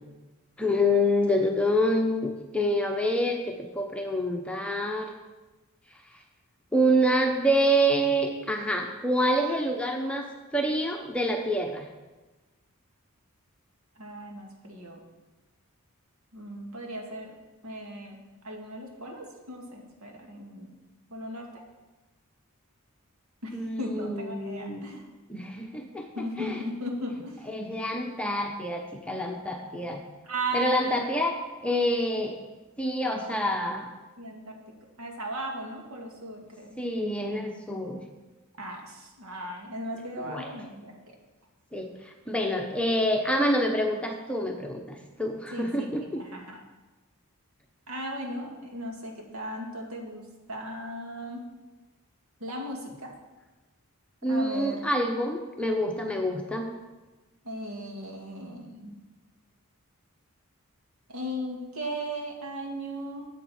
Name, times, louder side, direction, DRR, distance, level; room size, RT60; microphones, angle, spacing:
voice 1, 0.6-3.4 3.7-5.1 6.7-10.3 10.5-11.9 23.5-24.8 25.3-26.6 27.5-30.0 30.5-31.4 31.6-32.4 32.8-33.9 36.8-38.0 40.2-40.5 41.7-46.2 54.2-56.7, equal, 5° left, 2 dB, 0.9 m, -27 dB
voice 2, 14.0-15.0 16.3-17.3 17.6-18.2 18.4-20.7 21.1-21.6 23.4-25.0 26.2-27.5 30.2-30.9 33.1-33.3 34.2-34.6 35.0-36.8 38.6-40.9 45.5-46.6 47.9-51.4 52.4-53.1 54.3-54.9 57.4-58.9 61.1-63.3, right 1 dB, 75° right, 1 dB, 2.1 m, -37 dB
13.0 x 8.1 x 4.4 m, 1.2 s
head